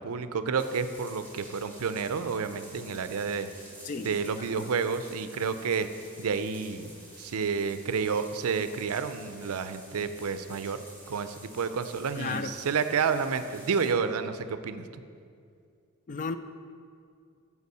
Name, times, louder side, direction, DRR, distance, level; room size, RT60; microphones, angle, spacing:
voice 1, 0.0-3.5 4.0-5.9 6.2-10.8 11.1-14.9, right 5 dB, 80° right, 11 dB, 0.5 m, -30 dB
sound 1, 0.6-13.9, right 1 dB, 10° left, 1.4 m, -50 dB
voice 2, 3.8-4.7 12.1-12.6 16.1-16.4, left 4 dB, 35° left, 10 dB, 0.3 m, -35 dB
8.2 x 4.8 x 6.7 m, 2.3 s
head